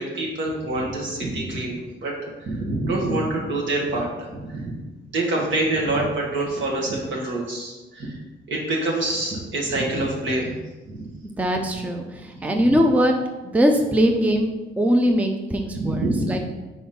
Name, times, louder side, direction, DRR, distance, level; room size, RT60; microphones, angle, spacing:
voice 1, 0.0-4.7 5.1-8.2 8.5-10.5 10.9-11.0 12.3-12.4 15.7-16.4, right 2 dB, 65° right, -2 dB, 1.8 m, -26 dB
voice 2, 11.4-13.1 13.5-14.5 14.8-16.4, equal, 5° right, 3 dB, 0.5 m, -21 dB
4.6 x 4.2 x 5.4 m, 1.2 s
cardioid pair, 90°, 20 cm